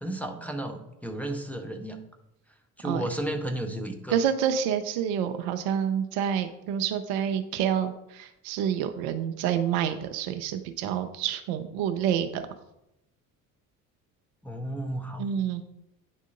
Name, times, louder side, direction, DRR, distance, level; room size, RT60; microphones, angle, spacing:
voice 1, 0.0-2.0 2.8-4.2 14.4-15.2, right 1 dB, 5° left, 3 dB, 0.7 m, -33 dB
voice 2, 4.1-12.4 15.2-15.6, right 9 dB, 50° right, 8 dB, 0.6 m, -28 dB
9.3 x 3.6 x 3.7 m, 0.86 s
figure-of-eight pair, 55°, 47 cm